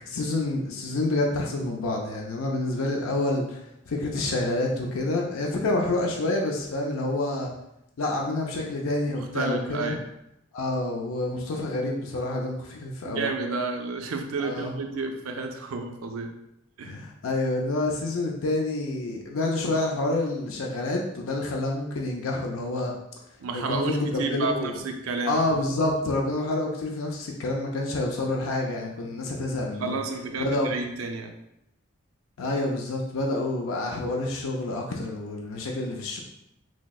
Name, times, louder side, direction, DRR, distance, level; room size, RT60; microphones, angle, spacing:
voice 1, 0.0-7.5 8.0-9.9 10.5-13.3 14.4-14.7 16.8-22.9 23.5-24.8 25.2-29.9 30.4-30.7 32.4-36.2, left 2 dB, 75° left, 0 dB, 0.5 m, -28 dB
voice 2, 9.1-10.0 13.0-16.3 16.8-17.0 23.4-25.4 29.8-31.4, right 4 dB, 80° right, 4 dB, 0.5 m, -31 dB
6.1 x 2.0 x 2.3 m, 0.83 s
head